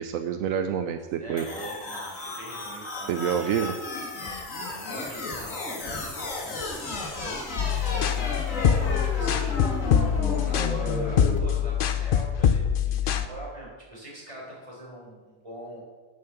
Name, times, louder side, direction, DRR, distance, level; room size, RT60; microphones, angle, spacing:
voice 1, 0.0-1.5 3.1-3.7, right 8 dB, 85° right, 7 dB, 1.0 m, -27 dB
voice 2, 1.2-4.1 4.7-6.8 7.1-15.8, equal, 25° right, -5 dB, 4.1 m, -43 dB
sound 1, 1.4-11.4, left 2 dB, 75° left, 2.0 m, -33 dB
sound 2, 7.6-13.3, left 8 dB, 55° left, 0.6 m, -24 dB
9.1 x 6.7 x 7.0 m, 1.3 s
omnidirectional pair, 1.4 m